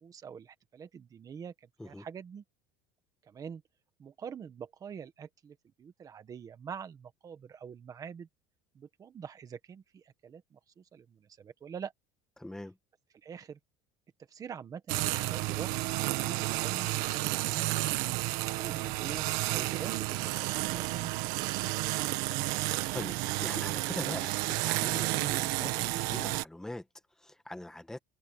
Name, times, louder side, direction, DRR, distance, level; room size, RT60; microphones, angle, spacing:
voice 1, 0.0-2.4 3.2-3.6 4.0-8.3 8.7-11.9 13.2-13.6 14.3-18.1 18.5-21.1, right 7 dB, 20° right, 1.5 m, -45 dB
voice 2, 12.4-12.8 22.9-23.2 23.4-24.3 24.6-26.9 27.2-28.0, left 1 dB, 5° left, 1.3 m, -41 dB
sound 1, 14.9-26.4, right 19 dB, 65° right, 1.6 m, -31 dB
cardioid pair, 175°, 16 cm